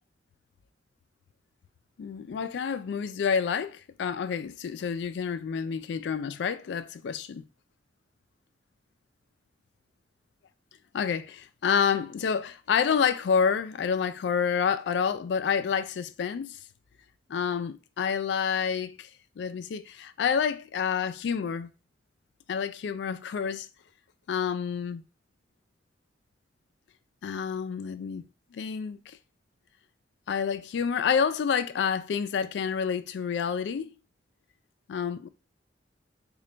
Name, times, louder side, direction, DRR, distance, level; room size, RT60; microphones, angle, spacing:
voice 1, 2.0-7.5 10.9-16.6 17.3-19.1 19.4-21.7 22.5-23.7 24.3-25.0 27.2-28.3 28.5-29.2 30.3-33.9 34.9-35.3, left 6 dB, 65° left, 0.3 m, -28 dB
3.8 x 2.2 x 3.2 m
head